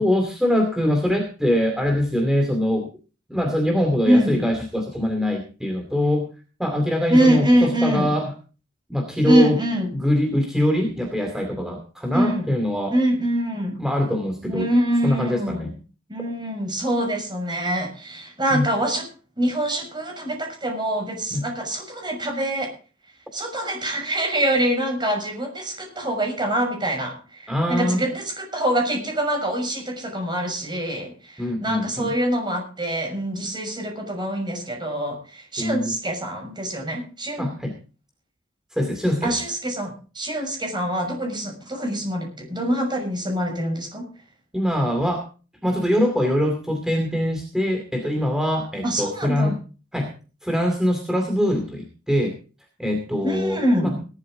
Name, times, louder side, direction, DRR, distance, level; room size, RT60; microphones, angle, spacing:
voice 1, 0.0-2.9 3.3-6.3 6.6-8.3 8.9-9.6 9.9-12.9 13.8-14.7 15.0-15.7 18.5-18.7 21.3-21.4 27.5-28.0 31.4-32.1 35.6-36.0 37.4-37.7 38.7-39.4 44.5-45.2 45.6-49.5 49.9-50.1 50.4-52.3 52.8-53.9, equal, 5° right, 4 dB, 2.4 m, -23 dB
voice 2, 4.0-4.4 7.1-8.1 9.2-9.9 12.1-12.5 12.9-13.8 14.4-15.7 16.1-19.1 19.4-22.7 23.3-37.5 39.2-44.1 48.8-49.5 53.2-54.0, right 1 dB, 25° right, 4 dB, 6.3 m, -24 dB
18.5 x 12.5 x 3.8 m, 0.36 s
head